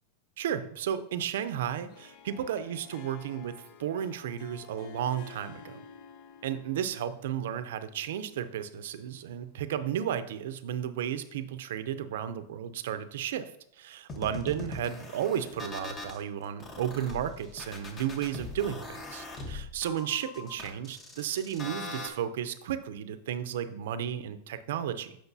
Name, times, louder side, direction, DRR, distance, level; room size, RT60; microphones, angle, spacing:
voice 1, 0.4-5.8 6.4-13.5 13.8-25.2, right 9 dB, 75° right, 11 dB, 0.5 m, -33 dB
Harp, 1.8-10.1, left 6 dB, 45° left, 0.6 m, -52 dB
sound 1, 14.1-16.2 16.6-22.1, left 2 dB, 20° left, 1.1 m, -41 dB
8.1 x 6.1 x 2.7 m, 0.74 s
supercardioid pair, 150°, 0 cm